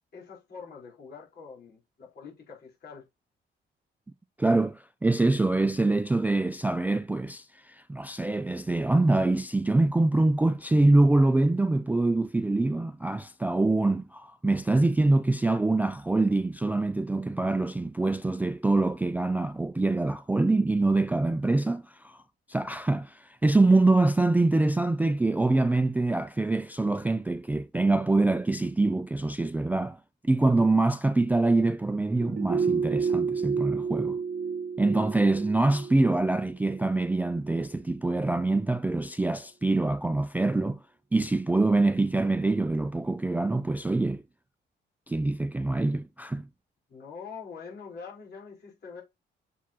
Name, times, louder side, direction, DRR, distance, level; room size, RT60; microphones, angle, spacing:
voice 1, 0.1-3.1 46.9-49.0, left 5 dB, 55° left, 4.1 m, -44 dB
voice 2, 4.4-22.2 22.5-30.0 30.2-34.2 34.8-40.8 41.1-44.2 45.1-46.5, right 2 dB, 10° right, 0.3 m, -25 dB
sound 1, 32.2-37.3 37.6-37.7, right 5 dB, 50° right, 0.9 m, -30 dB
7.1 x 4.7 x 2.9 m
cardioid pair, 90°, 20 cm